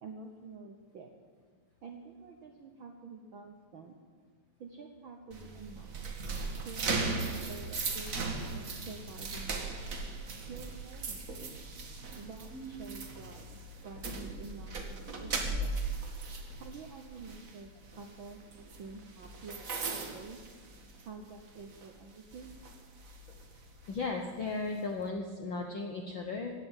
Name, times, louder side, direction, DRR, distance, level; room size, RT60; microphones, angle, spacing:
voice 1, 0.0-1.1 1.8-3.9 4.6-5.9 6.6-9.8 10.5-11.3 12.1-13.6 13.8-15.7 16.6-17.7 18.0-20.4 21.0-22.5, right 4 dB, 65° right, 3 dB, 1.2 m, -48 dB
sound 1, 5.3-21.2 21.6-21.8 22.3-24.0, right 3 dB, 40° right, 1.2 m, -38 dB
voice 2, 23.9-26.5, left 3 dB, 70° left, 3 dB, 1.1 m, -36 dB
16.0 x 9.5 x 8.3 m, 1.5 s
omnidirectional pair, 3.6 m